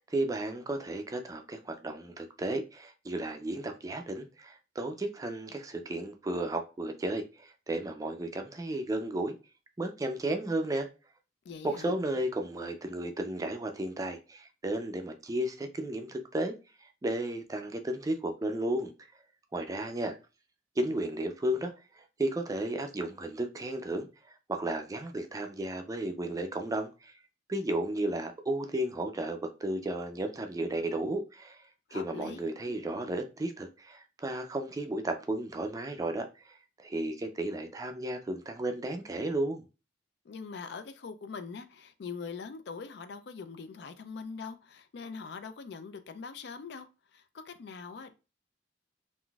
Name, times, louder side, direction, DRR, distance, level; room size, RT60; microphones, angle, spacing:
voice 1, 0.1-9.3 9.8-10.9 11.6-16.5 16.8-18.9 19.5-20.1 20.8-27.1 27.5-39.6, right 1 dB, 20° right, 0.4 m, -34 dB
voice 2, 11.4-11.9 31.9-32.5 40.3-46.9 47.1-48.1, left 5 dB, 65° left, 0.4 m, -42 dB
3.8 x 2.5 x 2.3 m
head